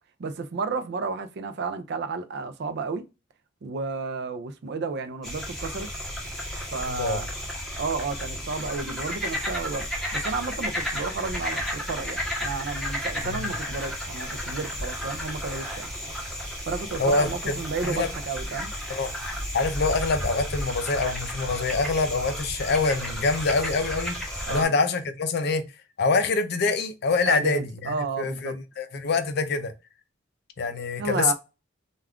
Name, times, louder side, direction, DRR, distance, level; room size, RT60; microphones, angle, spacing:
voice 1, 0.2-3.1 3.6-5.9 6.7-7.3 7.8-9.9 10.1-15.9 16.7-18.7 24.5-24.7 27.2-28.6 31.0-31.3, right 4 dB, 55° right, 0.4 m, -32 dB
sound 1, 5.2-24.6, equal, ahead, 0.8 m, -33 dB
voice 2, 6.9-7.2 13.2-13.5 17.0-17.5 17.9-18.1 18.9-19.1 19.5-24.2 24.5-25.6 26.0-29.7 30.6-31.3, left 4 dB, 55° left, 0.4 m, -25 dB
2.3 x 2.3 x 3.4 m
head